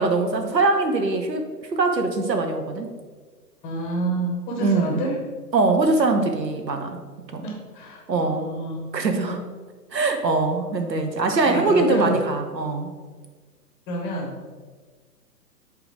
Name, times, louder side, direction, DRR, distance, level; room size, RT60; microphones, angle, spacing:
voice 1, 0.0-1.4 1.7-2.9 4.6-5.0 5.5-7.0 7.3-7.5 8.1-8.4 8.9-9.5 9.9-12.9, right 3 dB, 90° right, 6 dB, 1.1 m, -22 dB
voice 2, 3.6-5.2 7.4-8.9 11.4-12.2 13.9-14.4, right 1 dB, 10° left, 0 dB, 0.8 m, -29 dB
6.9 x 3.9 x 4.6 m, 1.5 s
figure-of-eight pair, 135°, 49 cm